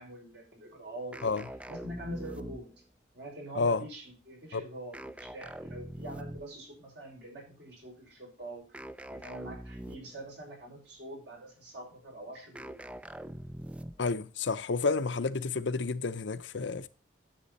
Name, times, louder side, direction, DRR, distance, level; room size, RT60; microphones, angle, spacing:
voice 1, 0.0-1.2 1.7-2.7 3.1-12.8, right 1 dB, 60° right, 5.8 m, -44 dB
sound 1, 1.1-2.9 4.9-6.6 8.7-10.3 12.5-14.1, right 1 dB, 5° right, 0.4 m, -43 dB
voice 2, 14.0-16.9, left 4 dB, 70° left, 0.7 m, -30 dB
10.0 x 7.6 x 4.1 m
head